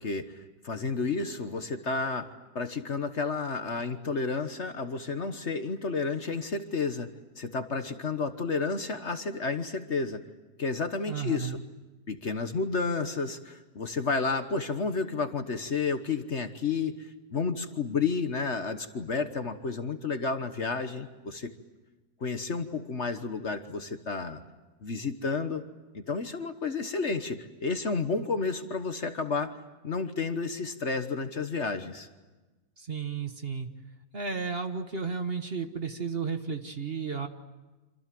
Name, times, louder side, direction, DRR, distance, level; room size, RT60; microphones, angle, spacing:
voice 1, 0.0-2.3 2.5-7.1 7.4-10.2 10.6-11.6 12.1-21.5 22.2-24.4 24.8-25.6 25.9-29.6 29.8-32.1, left 4 dB, 45° left, 8 dB, 1.4 m, -31 dB
voice 2, 11.1-11.6 32.8-33.7 34.1-37.3, right 5 dB, 40° right, 7 dB, 1.4 m, -33 dB
27.5 x 27.0 x 7.7 m, 1.2 s
omnidirectional pair, 1.7 m